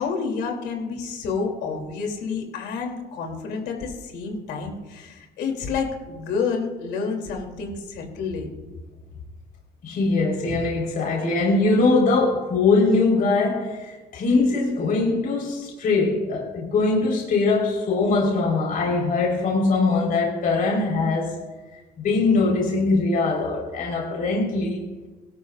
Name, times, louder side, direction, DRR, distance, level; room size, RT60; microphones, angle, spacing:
voice 1, 0.0-8.5, left 5 dB, 90° left, 2 dB, 2.8 m, -29 dB
voice 2, 9.8-21.4 22.0-24.8, left 3 dB, 55° left, -2 dB, 3.9 m, -22 dB
18.5 x 12.0 x 2.4 m, 1.2 s
cardioid pair, 110°, 17 cm